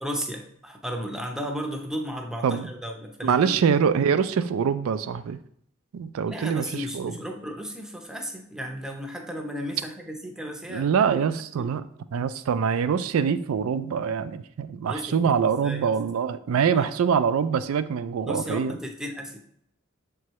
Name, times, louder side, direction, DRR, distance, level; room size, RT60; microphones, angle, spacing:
voice 1, 0.0-3.6 6.3-10.9 11.6-11.7 14.9-15.9 16.7-16.9 18.3-19.4, equal, 5° right, 3 dB, 0.6 m, -34 dB
voice 2, 3.2-5.4 5.9-7.1 10.7-11.8 12.1-18.8, right 7 dB, 75° right, 12 dB, 0.3 m, -24 dB
7.0 x 4.6 x 3.1 m, 0.68 s
head